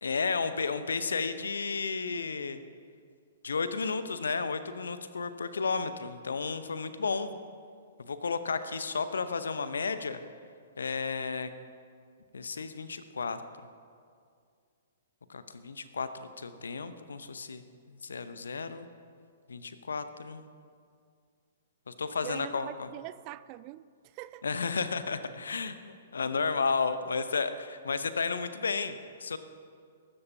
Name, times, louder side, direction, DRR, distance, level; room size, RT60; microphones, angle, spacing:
voice 1, 0.0-2.6 3.4-7.3 8.0-10.2 10.8-11.5 12.3-13.4 15.3-18.9 19.5-20.4 21.9-22.9 24.4-29.4, left 4 dB, 70° left, 11 dB, 0.9 m, -33 dB
voice 2, 22.2-24.5, right 16 dB, 35° right, 17 dB, 0.3 m, -43 dB
21.5 x 12.5 x 2.8 m, 2.2 s
figure-of-eight pair, 115°, 0 cm